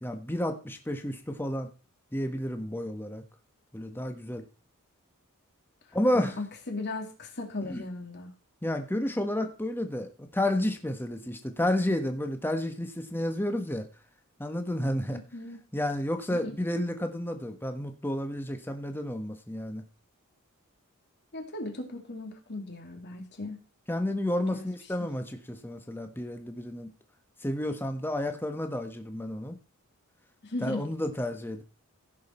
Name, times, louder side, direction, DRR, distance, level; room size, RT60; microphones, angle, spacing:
voice 1, 0.0-1.7 2.1-3.2 3.7-4.4 5.9-6.3 7.6-7.8 8.6-13.8 14.4-15.2 15.7-19.8 23.9-26.9 27.4-29.6 30.6-31.6, left 1 dB, 10° left, 6 dB, 1.3 m, -31 dB
voice 2, 6.1-8.3 15.1-15.6 16.3-16.6 21.3-23.6 24.5-24.7 30.4-30.9, left 2 dB, 50° left, 3 dB, 2.4 m, -37 dB
16.0 x 6.4 x 4.3 m, 0.34 s
head